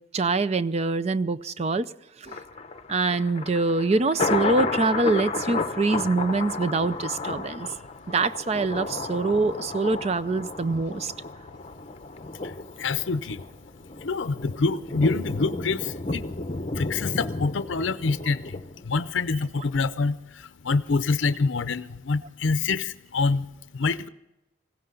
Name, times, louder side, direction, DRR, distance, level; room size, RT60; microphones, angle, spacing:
voice 1, 0.1-1.9 2.2-2.4 2.9-7.7 8.1-11.1, right 3 dB, 30° right, 14 dB, 0.5 m, -24 dB
Thunder, 2.3-19.4 19.8-19.9, left 3 dB, 30° left, 0.7 m, -33 dB
voice 2, 12.4-13.4 14.0-16.3 16.7-24.1, left 4 dB, 70° left, 12 dB, 0.6 m, -26 dB
19.5 x 16.0 x 3.8 m, 0.90 s
head